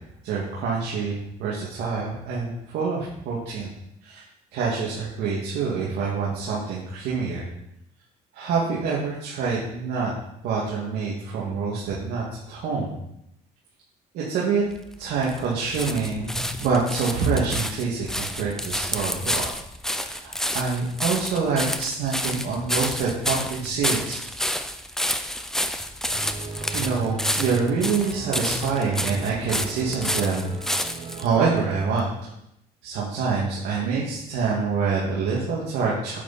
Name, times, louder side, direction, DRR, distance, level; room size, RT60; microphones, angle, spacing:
voice 1, 0.2-3.7 4.0-4.2 4.5-7.5 8.3-10.1 10.4-12.9 14.1-14.6 15.0-19.4 19.9-24.2 26.7-30.6 31.2-32.3 32.8-36.2, right 5 dB, 85° right, -6 dB, 2.2 m, -26 dB
sound 1, 14.7-31.3 32.0-32.1, equal, 5° left, 0.6 m, -29 dB
sound 2, 26.1-31.8, right 3 dB, 35° right, 1.3 m, -36 dB
9.0 x 8.1 x 4.3 m, 0.80 s
cardioid pair, 110°, 17 cm